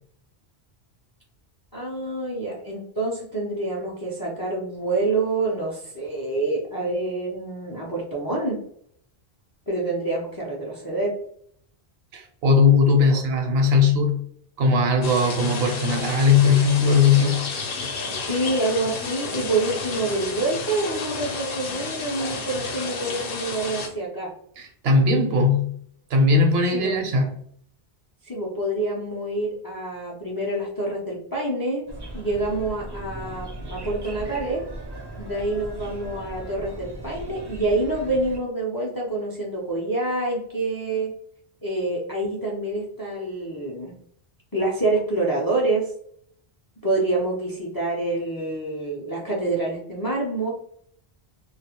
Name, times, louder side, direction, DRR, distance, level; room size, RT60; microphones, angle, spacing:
voice 1, 1.7-8.6 9.7-11.1 13.1-13.2 18.3-24.3 26.7-27.0 28.2-31.9 32.1-34.6 35.2-41.1 41.6-43.9 44.5-45.9 46.8-50.5, right 2 dB, 35° left, -3 dB, 0.3 m, -27 dB
voice 2, 12.1-14.2 14.6-17.5 24.6-25.7 26.1-27.4, left 4 dB, 75° right, 3 dB, 0.8 m, -19 dB
sound 1, 15.0-23.9, left 4 dB, 65° left, 0.7 m, -31 dB
sound 2, 31.9-38.4, right 1 dB, 40° right, 0.4 m, -37 dB
2.3 x 2.0 x 2.8 m, 0.65 s
omnidirectional pair, 1.0 m